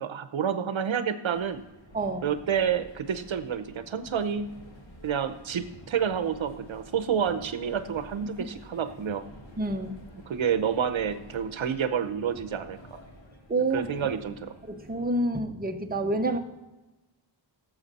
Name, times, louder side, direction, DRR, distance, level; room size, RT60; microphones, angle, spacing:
voice 1, 0.0-1.6 2.2-4.5 5.0-9.3 10.3-13.0 13.7-14.5, right 7 dB, 75° right, 11 dB, 0.8 m, -29 dB
sound 1, 1.3-15.3, equal, 70° left, 2.1 m, -50 dB
voice 2, 1.9-2.3 9.6-10.0 13.5-13.9 14.6-16.4, right 2 dB, 20° right, 5 dB, 0.8 m, -28 dB
16.5 x 7.3 x 4.1 m, 1.1 s
wide cardioid pair, 100°, 47 cm